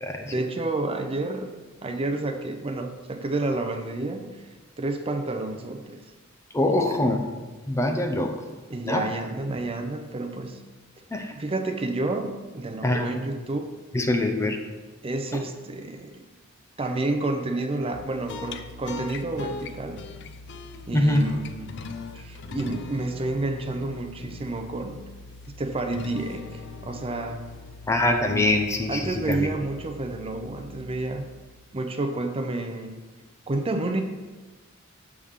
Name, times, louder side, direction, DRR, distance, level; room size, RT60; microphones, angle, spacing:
voice 1, 0.2-1.5 1.8-4.3 4.8-6.0 6.6-7.0 8.7-10.6 11.3-13.7 15.0-16.2 16.8-20.0 20.9-21.7 22.2-25.0 25.6-27.4 28.9-31.2 31.7-33.0 33.5-34.0, right 2 dB, 30° right, 5 dB, 0.6 m, -30 dB
voice 2, 6.5-7.3 7.7-8.3 8.8-9.0 11.1-11.3 12.8-13.1 13.9-14.6 20.9-21.3 27.9-29.5, left 1 dB, 15° left, 4 dB, 0.5 m, -23 dB
sound 1, 17.9-31.5, left 3 dB, 60° left, 0.5 m, -41 dB
7.2 x 3.6 x 6.4 m, 1.2 s
head